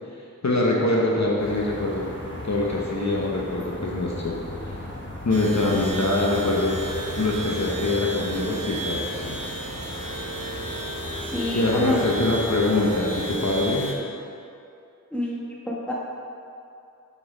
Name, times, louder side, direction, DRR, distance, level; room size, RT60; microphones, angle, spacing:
voice 1, 0.4-2.0 2.4-4.4 4.6-4.8 5.2-6.7 7.1-9.4 11.5-13.9, left 2 dB, 55° left, -3 dB, 0.9 m, -24 dB
sound 1, 1.4-13.7, left 1 dB, 35° left, 1.4 m, -37 dB
sound 2, 5.3-13.9, right 2 dB, 75° right, 0.9 m, -33 dB
voice 2, 11.2-12.0 15.1-15.9, left 1 dB, 5° left, -6 dB, 1.5 m, -28 dB
6.5 x 5.5 x 4.9 m, 2.6 s
wide cardioid pair, 60°, 33 cm